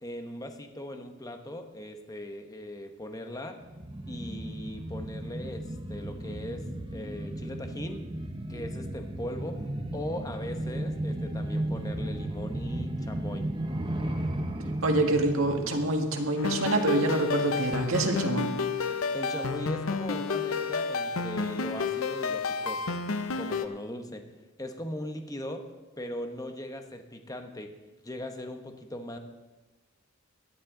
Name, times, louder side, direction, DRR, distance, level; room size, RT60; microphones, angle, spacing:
voice 1, 0.0-3.6 4.1-6.6 6.9-8.0 8.5-9.6 9.9-13.5 19.1-23.0 23.4-24.2 24.6-25.7 26.0-27.7 28.0-29.2, left 1 dB, 20° left, 5 dB, 1.0 m, -39 dB
sound 1, 3.6-16.9 17.2-17.3, right 1 dB, 25° right, 1.0 m, -35 dB
voice 2, 14.8-18.5, right 2 dB, 85° right, 3 dB, 1.8 m, -26 dB
sound 2, 16.4-23.7, left 4 dB, 85° left, 0.7 m, -30 dB
16.5 x 11.0 x 3.8 m, 1.2 s
head